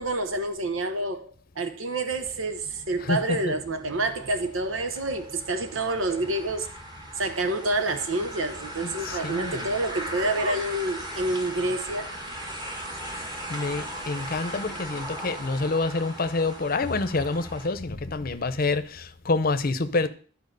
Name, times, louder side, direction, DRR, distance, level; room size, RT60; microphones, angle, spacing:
voice 1, 0.0-6.7 7.2-12.1, right 2 dB, 85° right, 1.1 m, -28 dB
sound 1, 2.1-17.7, right 1 dB, 20° right, 1.8 m, -38 dB
voice 2, 3.0-3.5 8.8-9.7 13.5-20.1, left 3 dB, 45° left, 0.7 m, -27 dB
10.5 x 4.6 x 6.7 m
head